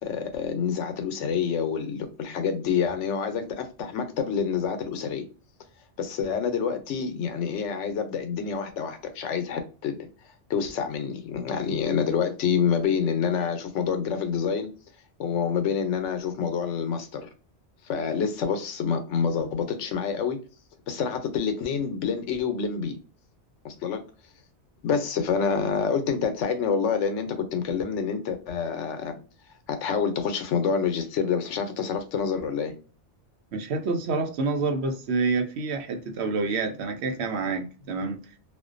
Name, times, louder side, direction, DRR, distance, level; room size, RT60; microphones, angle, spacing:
voice 1, 0.0-5.2 6.0-10.0 10.5-14.7 15.2-17.3 17.8-20.4 20.9-23.0 23.6-24.0 24.8-29.2 29.7-32.7, left 6 dB, 85° left, 0.9 m, -27 dB
voice 2, 33.5-38.2, right 3 dB, 70° right, 0.8 m, -28 dB
2.5 x 2.1 x 2.4 m
omnidirectional pair, 1.2 m